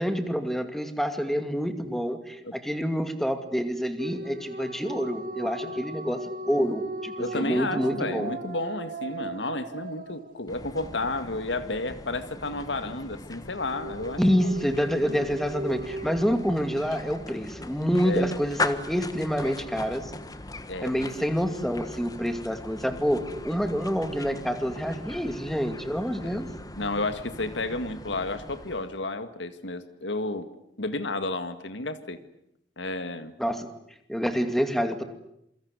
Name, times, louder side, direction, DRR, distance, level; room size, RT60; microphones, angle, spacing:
voice 1, 0.0-8.3 14.2-20.1 20.8-26.5 33.4-33.7 34.1-35.0, equal, ahead, 7 dB, 2.4 m, -27 dB
sound 1, 4.0-10.9 13.5-16.4, right 1 dB, 50° right, 1.4 m, -37 dB
voice 2, 7.2-14.5 15.1-15.2 18.0-18.3 20.7-20.9 26.2-26.4 26.8-30.5 30.8-32.2 32.8-33.3, left 2 dB, 80° left, 11 dB, 1.9 m, -32 dB
sound 2, 10.5-29.1, left 2 dB, 20° left, 1.4 m, -39 dB
27.5 x 23.5 x 8.3 m, 0.77 s
head